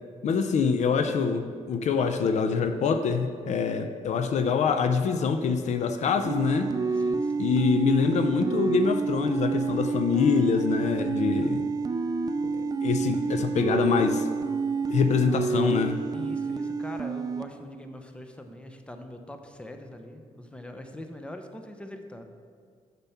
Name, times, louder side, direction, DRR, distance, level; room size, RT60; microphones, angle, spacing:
voice 1, 0.2-6.7 7.4-11.7 12.4-12.5 12.8-14.3 14.9-16.0, left 5 dB, 65° left, 8 dB, 0.5 m, -25 dB
sound 1, 6.2-17.4, right 4 dB, 30° right, 0.4 m, -28 dB
voice 2, 6.9-7.5 13.0-13.3 16.1-22.3, left 1 dB, 10° left, 6 dB, 0.8 m, -42 dB
6.8 x 5.9 x 5.7 m, 2.1 s
cardioid pair, 75°, 13 cm